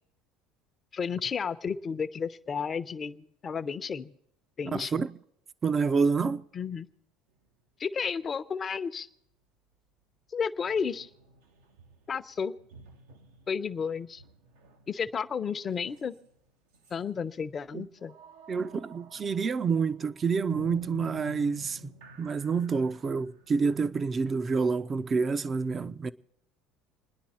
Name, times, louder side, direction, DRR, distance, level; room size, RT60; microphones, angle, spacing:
voice 1, 0.9-4.1 4.6-5.0 6.5-6.9 7.8-9.1 10.3-11.1 12.1-12.5 13.5-14.2 14.9-16.1 16.9-18.2, left 6 dB, 35° left, 0.8 m, -32 dB
voice 2, 4.7-5.2 5.6-6.4 17.7-17.9 18.5-21.9 22.2-26.1, right 5 dB, 35° right, 0.6 m, -28 dB
sound 1, 7.4-7.5 10.7-16.5 16.7-17.0 18.0-24.6, right 1 dB, 90° right, 1.3 m, -51 dB
28.0 x 10.0 x 4.4 m
hypercardioid pair, 80°, 0 cm